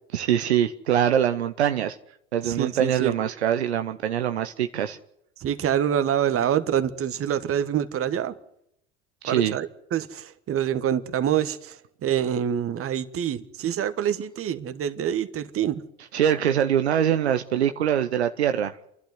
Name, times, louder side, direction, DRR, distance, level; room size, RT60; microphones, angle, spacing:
voice 1, 0.1-2.0 2.3-5.0 9.2-9.6 16.1-18.8, right 9 dB, 85° right, 0.8 m, -23 dB
voice 2, 2.4-3.1 5.4-8.3 9.3-15.8, right 9 dB, 45° right, 1.5 m, -26 dB
29.0 x 12.0 x 9.5 m
hypercardioid pair, 65°, 32 cm